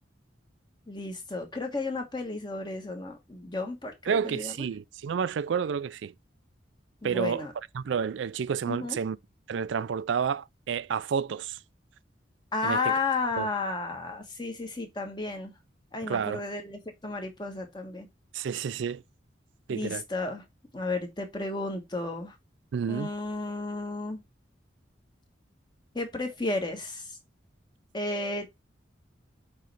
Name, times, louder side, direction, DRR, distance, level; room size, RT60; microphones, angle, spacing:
voice 1, 0.9-4.5 7.0-7.5 8.7-9.0 12.5-15.5 15.9-18.1 19.7-20.4 20.7-22.3 22.9-24.2 25.9-27.2 27.9-28.5, left 3 dB, 25° left, 1.3 m, -33 dB
voice 2, 4.1-6.1 7.0-7.4 7.7-9.2 9.5-11.6 12.6-13.0 13.4-13.5 16.0-16.4 18.3-19.0 19.7-20.0 22.7-23.1, right 7 dB, 80° right, 0.4 m, -30 dB
7.5 x 3.2 x 4.1 m
head